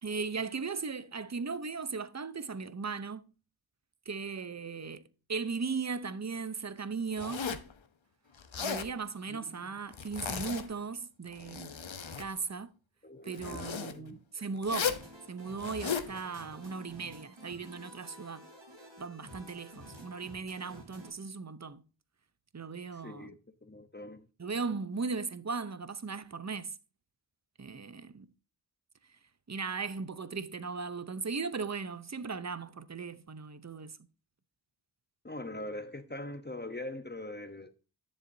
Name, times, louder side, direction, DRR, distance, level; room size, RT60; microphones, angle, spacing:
voice 1, 0.0-3.3 4.1-5.0 5.3-7.7 8.6-11.7 12.1-12.7 13.2-15.0 15.3-18.4 19.0-21.8 22.5-23.3 24.4-26.7 27.6-28.3 29.5-34.0, right 4 dB, 35° right, 0.7 m, -37 dB
Zipper (clothing), 7.2-7.7 8.4-8.9 9.9-10.8 11.3-12.3 13.4-13.9 14.6-15.1 15.6-16.1, left 6 dB, 85° left, 0.9 m, -36 dB
voice 2, 9.3-9.8 13.0-14.5 22.9-24.3 35.2-37.7, left 1 dB, 25° left, 0.9 m, -43 dB
sound 1, 14.7-21.1, equal, 70° right, 3.9 m, -51 dB
10.0 x 7.3 x 2.7 m
wide cardioid pair, 45°, 46 cm